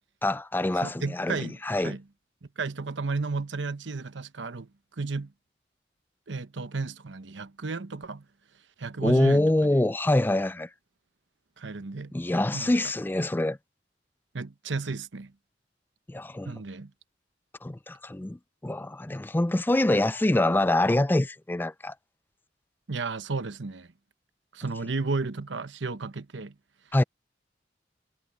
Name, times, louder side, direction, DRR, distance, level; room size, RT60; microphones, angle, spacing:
voice 1, 0.2-2.0 9.0-10.7 12.1-13.6 16.1-16.6 17.6-21.9 26.9-27.0, left 1 dB, 10° left, 0.4 m, -25 dB
voice 2, 0.8-2.0 2.6-4.7 5.0-5.3 6.3-8.2 8.8-9.7 11.6-12.1 12.5-12.7 14.3-15.3 16.4-16.9 22.9-23.9 24.5-26.5, right 3 dB, 85° right, 1.0 m, -33 dB
head